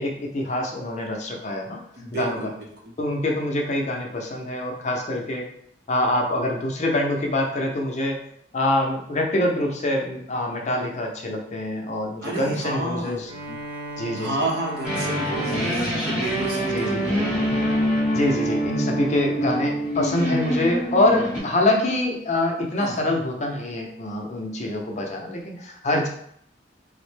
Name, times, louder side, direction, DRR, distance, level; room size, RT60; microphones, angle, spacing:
voice 1, 0.0-1.8 2.1-2.4 3.0-5.5 5.9-8.2 8.5-13.3 14.0-14.3 16.7-17.2 18.1-26.1, left 1 dB, 40° left, 1 dB, 0.6 m, -25 dB
voice 2, 1.9-2.9 12.2-13.6 14.2-17.3 22.8-23.0, right 2 dB, 65° right, 0 dB, 0.7 m, -31 dB
Bowed string instrument, 13.2-17.5, right 1 dB, 30° right, 0.8 m, -38 dB
sound 1, 14.8-21.4, equal, 5° right, 0.9 m, -25 dB
3.5 x 2.1 x 3.2 m, 0.67 s
head